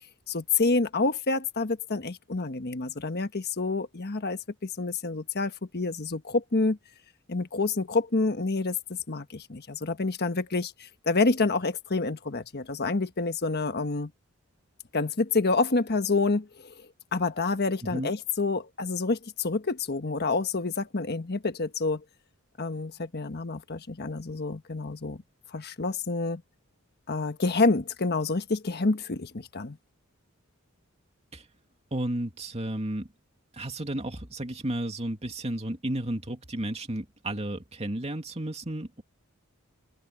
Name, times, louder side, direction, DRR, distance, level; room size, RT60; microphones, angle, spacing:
voice 1, 0.3-6.8 7.3-14.1 14.9-16.7 17.1-22.0 22.6-25.2 25.5-26.4 27.1-29.8, left 3 dB, 50° left, 1.3 m, -28 dB
voice 2, 31.9-33.1 33.5-39.0, right 1 dB, 30° right, 2.6 m, -33 dB
open air
head